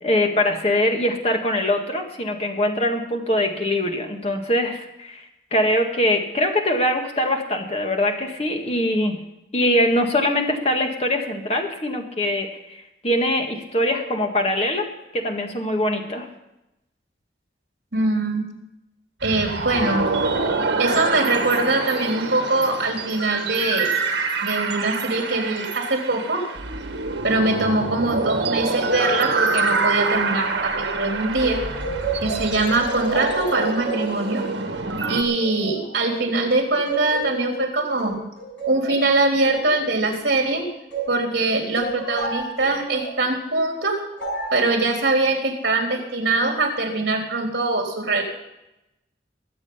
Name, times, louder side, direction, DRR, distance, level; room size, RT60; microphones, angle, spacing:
voice 1, 0.0-5.2 5.5-9.2 9.5-14.9 15.1-16.3, left 1 dB, 35° left, 3 dB, 1.8 m, -22 dB
voice 2, 17.9-18.5 19.2-20.1 20.8-23.9 24.4-26.5 27.2-31.6 32.2-34.5 35.1-38.2 38.7-40.7 41.1-44.0 44.5-48.2, right 2 dB, 65° right, 1 dB, 3.7 m, -22 dB
sound 1, 19.2-35.2, right 3 dB, 80° right, 1.7 m, -26 dB
sound 2, 31.4-36.4 36.9-41.2 41.8-43.2 44.2-44.6, right 3 dB, 75° left, 6.7 m, -32 dB
22.0 x 7.9 x 5.7 m, 0.90 s
head